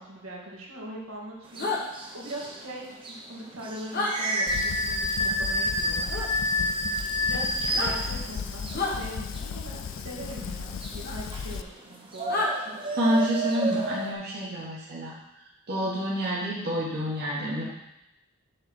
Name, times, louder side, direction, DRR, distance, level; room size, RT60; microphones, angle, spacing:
voice 1, 0.0-1.8 2.1-6.1 6.5-6.8 7.2-12.8, right 1 dB, 75° right, -4 dB, 1.8 m, -41 dB
sound 1, 1.5-14.1, equal, 25° right, 0.9 m, -31 dB
sound 2, 1.6-1.8 3.9-4.1 6.1-6.3 7.6-7.9 8.7-9.0 11.0-11.2 12.3-12.5, left 3 dB, 45° left, 1.2 m, -28 dB
Fire, 4.5-11.6, left 6 dB, 60° left, 0.3 m, -36 dB
voice 2, 13.0-15.2 15.7-17.6, equal, 50° right, -6 dB, 1.5 m, -28 dB
6.6 x 4.0 x 6.0 m, 0.89 s
head